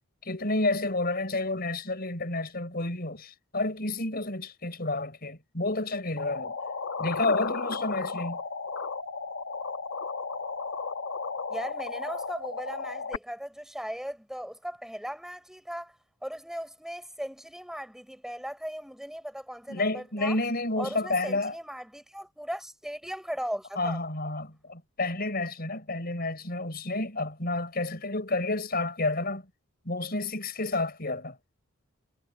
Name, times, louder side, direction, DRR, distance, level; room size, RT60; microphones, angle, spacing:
voice 1, 0.2-6.6 7.0-8.4 19.7-21.5 23.8-29.4 29.9-31.4, left 2 dB, 45° left, 5.2 m, -30 dB
sound 1, 6.2-13.2, left 4 dB, 70° left, 1.2 m, -34 dB
voice 2, 11.5-20.4 20.8-24.0, equal, ahead, 6.3 m, -38 dB
head